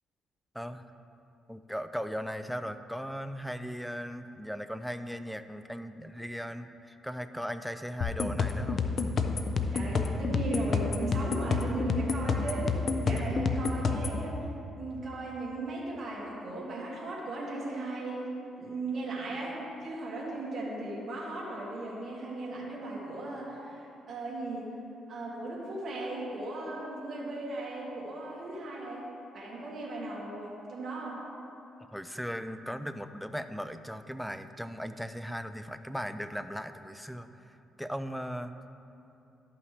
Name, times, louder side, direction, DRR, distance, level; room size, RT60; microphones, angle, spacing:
voice 1, 0.5-0.9 1.5-8.8 13.1-13.4 31.9-38.5, equal, ahead, 10 dB, 0.4 m, -38 dB
sound 1, 8.0-14.2, left 4 dB, 55° left, 0.5 m, -29 dB
voice 2, 9.7-14.5 14.8-23.8 24.1-24.7 25.1-29.1 29.3-31.2, right 2 dB, 50° right, -6 dB, 1.8 m, -37 dB
12.0 x 5.8 x 3.2 m, 2.9 s
cardioid pair, 90°, 0 cm